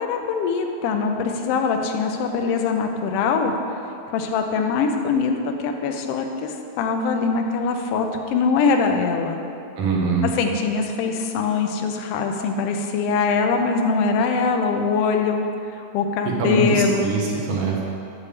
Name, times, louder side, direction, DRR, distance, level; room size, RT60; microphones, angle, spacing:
voice 1, 0.0-3.5 4.1-9.4 10.4-15.4 15.9-17.1, left 5 dB, 80° left, 4 dB, 1.5 m, -22 dB
voice 2, 9.8-10.3 16.4-17.8, right 3 dB, 60° right, -2 dB, 1.9 m, -22 dB
9.9 x 3.4 x 7.0 m, 2.6 s
omnidirectional pair, 3.4 m